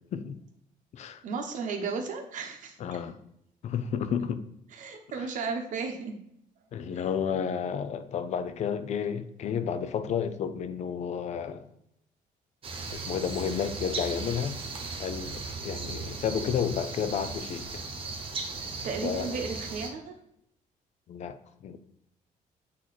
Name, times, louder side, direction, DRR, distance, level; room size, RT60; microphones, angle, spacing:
voice 1, 1.2-2.8 4.7-6.2 6.9-7.0 18.8-20.2, right 4 dB, 60° right, 5 dB, 0.9 m, -34 dB
voice 2, 2.8-3.2 3.6-4.4 5.2-5.3 6.7-11.6 12.9-14.6 15.0-17.7 19.0-19.3 21.1-21.4 21.6-21.8, left 7 dB, 50° left, 11 dB, 0.5 m, -31 dB
sound 1, 12.6-19.9, right 3 dB, 35° right, 1.0 m, -37 dB
8.4 x 3.0 x 4.1 m, 0.75 s
cardioid pair, 160°, 15 cm